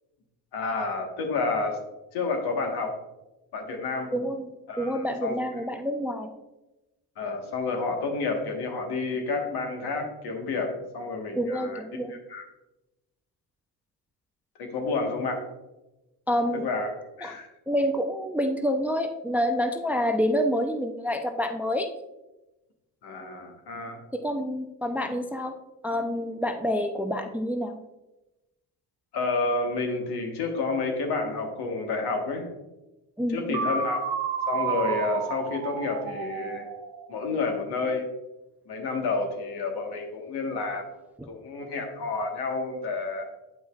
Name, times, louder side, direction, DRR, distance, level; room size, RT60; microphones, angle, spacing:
voice 1, 0.5-1.8 2.1-3.0 3.5-4.1 4.7-5.4 7.2-11.8 12.1-12.4 14.6-15.4 16.6-16.9 17.2-17.5 23.0-24.0 29.1-32.5 33.3-34.1 34.5-36.7 37.1-38.0 38.7-40.9 41.3-43.2, left 3 dB, 70° left, 3 dB, 1.4 m, -30 dB
voice 2, 4.1-4.5 4.8-6.3 11.4-12.1 16.3-16.7 17.2-17.3 17.7-21.9 24.1-25.6 25.8-27.8 33.2-33.7 41.2-41.3, equal, 5° right, 6 dB, 0.4 m, -27 dB
sound 1, 33.5-37.4, right 6 dB, 75° right, 0.8 m, -31 dB
8.4 x 5.4 x 2.3 m, 1.0 s
supercardioid pair, 85°, 41 cm